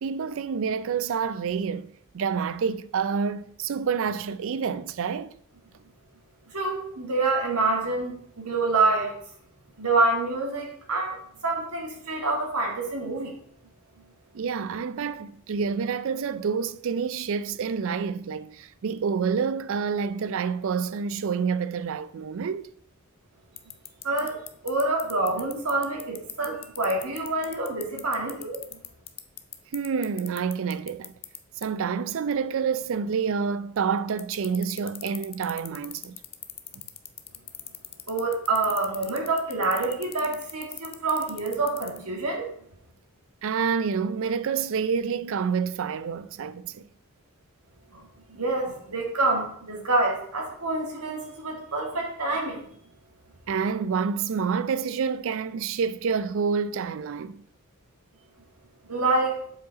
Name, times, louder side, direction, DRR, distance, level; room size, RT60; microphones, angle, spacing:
voice 1, 0.0-5.4 14.3-22.7 29.7-31.1 31.6-36.2 43.4-46.8 53.5-57.4, right 6 dB, 60° right, 0.4 m, -28 dB
voice 2, 6.5-9.1 9.8-11.2 11.4-13.3 24.0-24.4 24.6-28.6 38.1-42.5 47.9-48.0 48.3-52.7 58.9-59.4, right 2 dB, 90° right, 2.0 m, -27 dB
sound 1, 23.6-31.4 31.6-31.7 34.2-42.0, left 12 dB, 25° left, 0.4 m, -37 dB
7.5 x 4.9 x 4.0 m
head